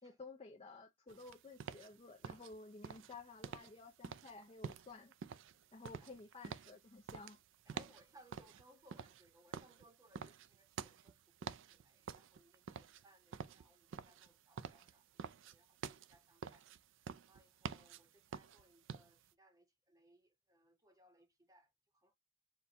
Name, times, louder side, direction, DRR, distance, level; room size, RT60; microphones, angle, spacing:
voice 1, 0.0-5.1 5.7-7.4, left 3 dB, 25° left, 0.4 m, -54 dB
sound 1, 1.1-19.3, right 6 dB, 55° right, 0.3 m, -49 dB
voice 2, 7.7-22.1, right 1 dB, 15° right, 0.8 m, -68 dB
4.3 x 2.2 x 3.9 m
head